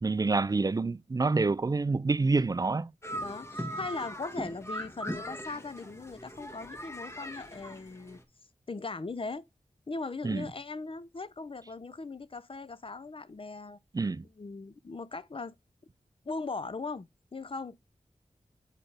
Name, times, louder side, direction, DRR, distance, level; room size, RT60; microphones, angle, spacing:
voice 1, 0.0-2.9 10.2-10.5 13.9-14.3, right 3 dB, 30° right, 0.3 m, -27 dB
sound 1, 3.0-8.2, equal, 20° left, 1.6 m, -40 dB
voice 2, 3.2-8.2 8.7-9.4 9.9-13.8 14.4-15.5 16.2-17.8, left 3 dB, 45° left, 0.5 m, -39 dB
8.8 x 4.3 x 3.3 m
cardioid pair, 45°, 13 cm